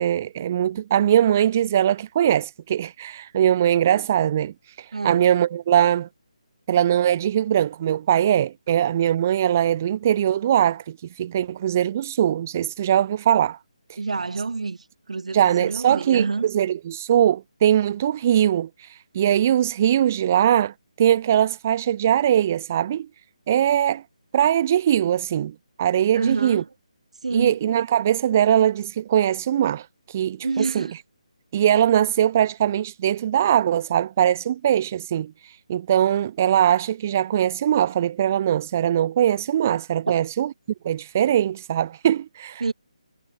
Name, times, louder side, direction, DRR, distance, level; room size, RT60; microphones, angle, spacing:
voice 1, 0.0-6.1 6.7-13.6 15.3-23.1 23.5-24.0 24.3-26.6 27.3-30.9 31.5-40.5 40.8-42.6, right 10 dB, 20° right, 0.4 m, -21 dB
voice 2, 4.9-5.3 14.0-14.8 15.1-16.5 26.1-26.7 27.2-27.6 30.4-30.9 42.6-42.7, right 4 dB, 70° right, 2.6 m, -28 dB
hypercardioid pair, 175°, 4 cm